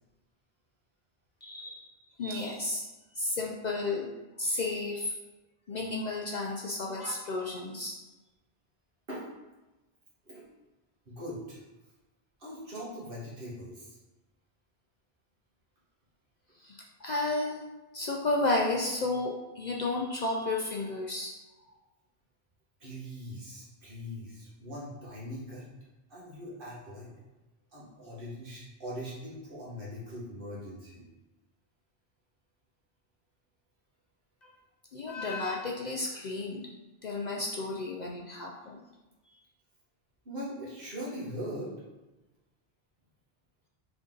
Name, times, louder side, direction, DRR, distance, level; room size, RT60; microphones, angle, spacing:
voice 1, 1.4-1.9 2.2-2.8 3.2-4.1 4.4-5.1 5.7-7.9 16.6-17.6 17.9-21.3 34.4-34.5 34.9-36.6 37.0-38.8, left 2 dB, 55° left, -1 dB, 0.5 m, -32 dB
voice 2, 11.1-11.6 12.4-14.0 22.8-25.6 26.1-27.1 27.7-31.0 40.2-41.7, equal, 60° right, -7 dB, 1.6 m, -41 dB
3.9 x 3.5 x 3.7 m, 1.1 s
omnidirectional pair, 1.1 m